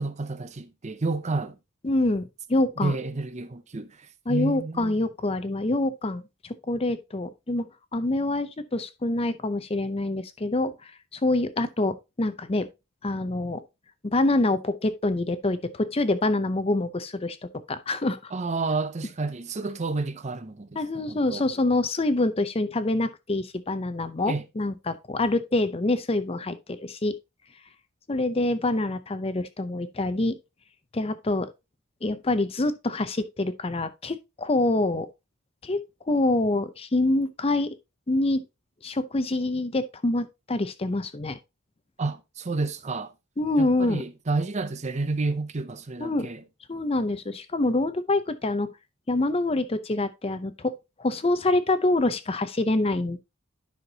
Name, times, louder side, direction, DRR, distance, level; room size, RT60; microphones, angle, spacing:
voice 1, 0.0-1.6 2.8-5.0 18.3-20.8 21.1-21.4 24.3-24.4 42.0-43.1 43.6-46.4, right 3 dB, 30° right, 0.6 m, -30 dB
voice 2, 1.8-3.0 4.3-12.7 13.0-13.6 14.0-17.4 17.7-18.3 20.8-27.1 28.1-30.4 30.9-31.5 32.0-35.1 35.6-35.8 36.1-37.7 38.1-38.4 38.8-41.4 43.4-44.0 46.0-46.3 46.7-48.7 49.1-53.2, left 2 dB, 25° left, 0.6 m, -26 dB
10.5 x 5.8 x 2.8 m
head